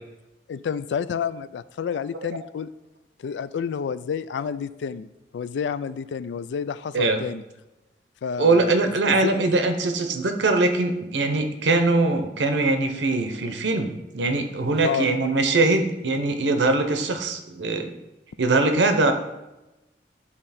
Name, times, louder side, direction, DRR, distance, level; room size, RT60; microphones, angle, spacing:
voice 1, 0.5-2.7 3.2-5.1 5.3-7.4 8.2-9.3 14.8-15.1, left 7 dB, 75° left, 16 dB, 0.3 m, -29 dB
voice 2, 6.9-7.2 8.4-17.9 18.4-19.1, right 3 dB, 75° right, 7 dB, 0.8 m, -22 dB
9.9 x 3.7 x 4.2 m, 1.0 s
head